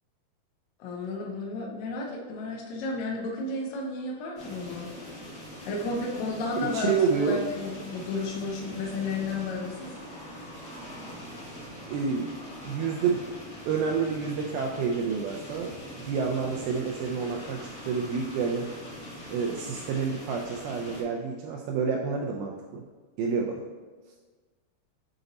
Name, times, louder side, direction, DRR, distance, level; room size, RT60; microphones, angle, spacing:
voice 1, 0.8-4.9 5.6-9.9, left 2 dB, 90° left, -1 dB, 1.6 m, -33 dB
sound 1, 4.4-21.0, equal, 50° left, 1.5 m, -43 dB
voice 2, 6.6-7.4 11.9-12.3 12.6-13.2 13.7-15.7 16.1-18.7 19.3-22.8 23.2-23.7, right 5 dB, 85° right, 1 dB, 2.2 m, -28 dB
6.8 x 4.0 x 3.9 m, 1.4 s
omnidirectional pair, 4.6 m